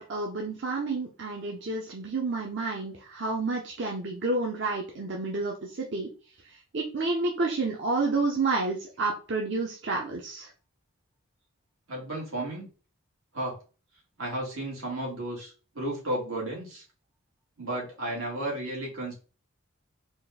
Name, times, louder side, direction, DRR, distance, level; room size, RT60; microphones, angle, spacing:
voice 1, 0.0-6.1 6.7-10.5, right 3 dB, 55° right, 0 dB, 0.7 m, -30 dB
voice 2, 11.9-12.7 13.3-13.5 14.2-16.8 17.6-19.1, right 1 dB, 90° right, -2 dB, 2.0 m, -33 dB
4.2 x 2.5 x 3.4 m, 0.35 s
head